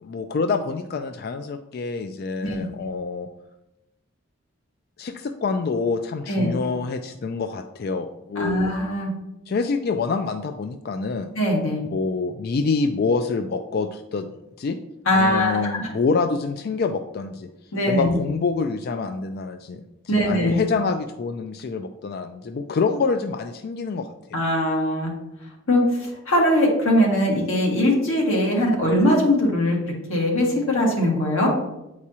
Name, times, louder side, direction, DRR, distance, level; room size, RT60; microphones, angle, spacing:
voice 1, 0.0-3.3 5.0-8.7 9.5-11.3 11.9-14.3 14.6-14.8 15.1-17.5 17.9-24.1, left 4 dB, 50° left, 7 dB, 0.3 m, -26 dB
voice 2, 8.4-9.1 11.3-11.8 15.1-15.8 17.7-18.2 20.1-20.6 24.3-25.1 25.7-31.5, left 1 dB, 80° left, -2 dB, 1.8 m, -21 dB
8.2 x 4.8 x 2.8 m, 0.92 s
head